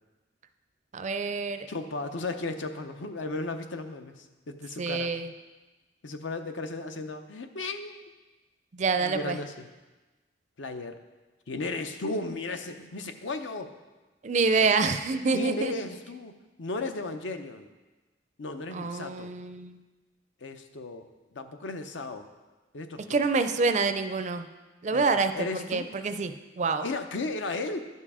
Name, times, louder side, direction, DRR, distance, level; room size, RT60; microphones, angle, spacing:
voice 1, 0.9-1.7 4.8-5.3 8.7-9.4 14.2-15.7 18.7-19.8 23.1-24.5 24.8-26.9, right 4 dB, 40° right, 9 dB, 0.4 m, -27 dB
voice 2, 1.7-5.1 6.0-8.0 9.0-9.7 10.6-11.0 11.5-13.7 15.3-16.3 16.6-17.7 18.4-19.3 20.4-21.1 21.3-22.2 22.7-23.2 24.9-25.9 26.8-27.9, left 2 dB, 75° left, 7 dB, 0.7 m, -35 dB
11.5 x 5.5 x 4.9 m, 1.2 s
head